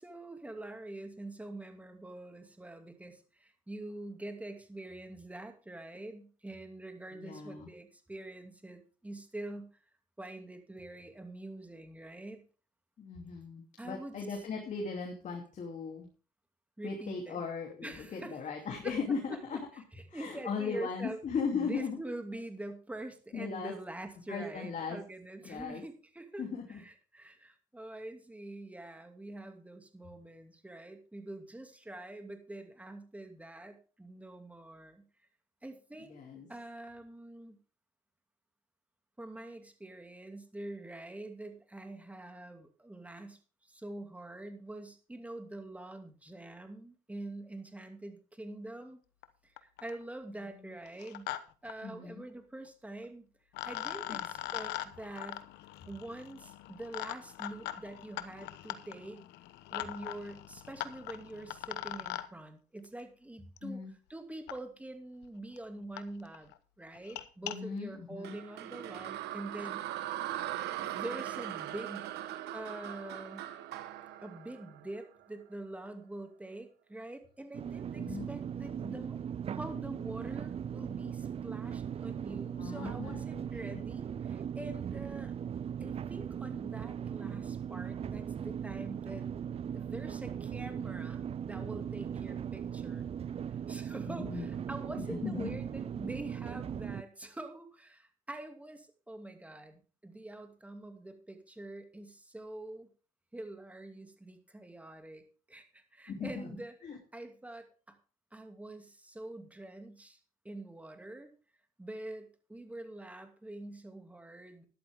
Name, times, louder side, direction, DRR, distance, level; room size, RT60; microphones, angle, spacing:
voice 1, 0.0-9.7 10.2-12.4 13.8-14.4 16.8-17.4 17.8-18.4 18.8-18.9 19.3-19.4 19.7-21.2 21.5-35.0 35.6-36.2 36.5-37.6 39.2-49.0 49.4-51.3 51.6-53.3 53.6-55.4 55.9-59.2 59.7-69.8 70.8-73.4 74.2-79.2 79.5-85.3 85.8-89.2 89.7-93.1 93.5-102.9 103.3-108.0 108.3-110.2 110.4-111.3 111.8-114.6, right 1 dB, 10° right, 6 dB, 2.4 m, -45 dB
voice 2, 7.1-7.7 13.0-16.1 16.8-19.6 20.1-22.0 23.3-23.7 24.3-25.0 25.4-25.8 26.4-26.8 36.0-36.5 51.8-52.2 54.1-54.3 63.6-63.9 67.4-68.4 78.0-78.3 82.6-83.8 94.1-94.5 95.0-95.6 106.1-107.0, left 5 dB, 45° left, 1 dB, 3.0 m, -38 dB
sound 1, 49.2-49.3 49.6-50.0 50.9-51.4 51.7-51.8 53.0-53.1 53.5-62.3 63.6-63.7 64.5-64.6 65.2-65.3 65.6-65.7 66.0-66.1 66.3-66.5 67.0-67.6, left 14 dB, 90° left, 1.0 m, -41 dB
sound 2, 68.2-75.4, right 13 dB, 80° right, 1.3 m, -40 dB
sound 3, 77.5-97.0, right 8 dB, 35° right, 0.5 m, -39 dB
13.0 x 11.5 x 3.6 m, 0.37 s
cardioid pair, 110°, 17 cm